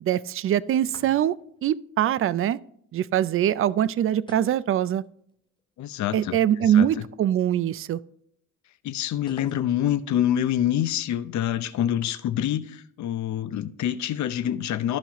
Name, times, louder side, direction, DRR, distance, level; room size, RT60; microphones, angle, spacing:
voice 1, 0.0-1.3 1.6-2.6 2.9-5.0 6.1-8.0, right 11 dB, 45° right, 0.4 m, -23 dB
sound 1, 0.8-1.6 4.3-5.3 5.6-5.7 9.3-10.1, left 2 dB, 15° left, 0.7 m, -48 dB
voice 2, 5.8-7.0 8.8-15.0, left 11 dB, 70° left, 0.7 m, -26 dB
13.5 x 5.7 x 3.0 m
cardioid pair, 90°, 30 cm